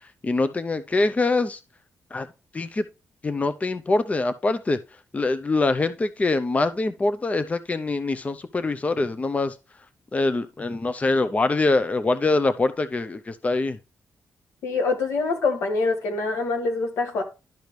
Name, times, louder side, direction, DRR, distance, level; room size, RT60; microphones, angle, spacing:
voice 1, 0.2-1.6 2.1-2.3 2.5-2.8 3.2-4.8 5.1-9.5 10.1-13.8, left 3 dB, 30° left, 0.7 m, -24 dB
voice 2, 14.6-17.2, left 3 dB, 85° left, 1.7 m, -25 dB
12.0 x 5.1 x 3.1 m
cardioid pair, 80°, 5 cm